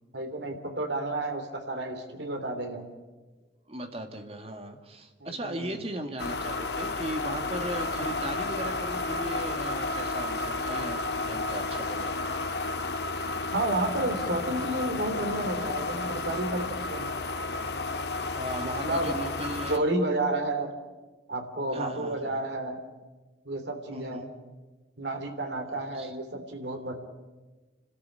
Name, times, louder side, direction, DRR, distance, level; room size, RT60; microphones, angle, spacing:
voice 1, 0.1-2.9 5.2-5.7 13.5-17.1 18.6-19.2 19.7-20.7 21.3-22.8 23.4-24.3 25.0-26.9, right 2 dB, 75° right, 6 dB, 3.2 m, -31 dB
voice 2, 3.7-12.1 18.4-19.8 21.7-22.4 23.9-24.3 25.7-26.2, right 1 dB, 35° right, 5 dB, 2.1 m, -37 dB
sound 1, 6.2-19.8, left 3 dB, 70° left, 1.6 m, -32 dB
29.5 x 13.0 x 9.8 m, 1.3 s
head